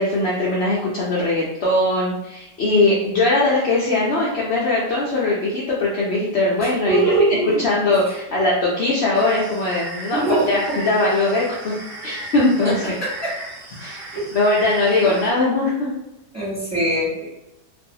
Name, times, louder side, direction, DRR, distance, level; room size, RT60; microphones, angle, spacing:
voice 1, 0.0-7.0 7.6-10.2 10.5-11.7 12.0-12.8 13.8-14.1 14.3-15.9, left 2 dB, 75° left, -5 dB, 0.6 m, -20 dB
voice 2, 6.6-7.6 8.3-8.4 10.1-10.8 12.6-12.7 13.0-13.3 14.1-14.3 15.0-15.2 16.3-17.3, right 1 dB, 10° right, -9 dB, 1.0 m, -22 dB
sound 1, 9.1-15.3, right 1 dB, 85° right, 0.5 m, -36 dB
2.5 x 2.3 x 2.7 m, 0.90 s
omnidirectional pair, 1.7 m